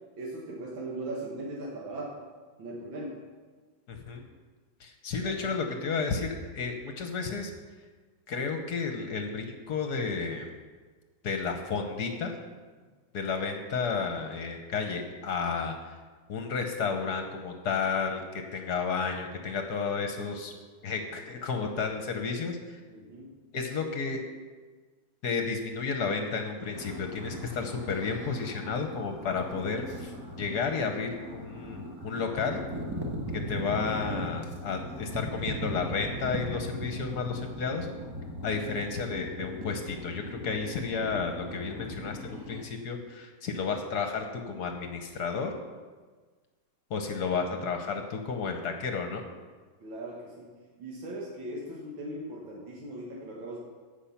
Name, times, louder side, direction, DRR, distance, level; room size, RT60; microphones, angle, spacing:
voice 1, 0.1-2.2 2.6-3.2 5.2-5.6 22.9-23.3 49.8-50.5 50.8-53.6, right 1 dB, 75° right, -3 dB, 2.2 m, -39 dB
voice 2, 3.9-4.2 4.8-7.5 8.3-10.5 11.2-12.4 13.1-16.0 16.3-20.5 20.8-22.8 23.5-24.2 25.2-32.6 33.3-37.9 38.4-45.5 46.9-49.2, left 5 dB, 60° left, 5 dB, 1.3 m, -32 dB
sound 1, 26.7-42.6, equal, 15° right, 1.0 m, -39 dB
15.0 x 5.8 x 5.8 m, 1.4 s
omnidirectional pair, 2.2 m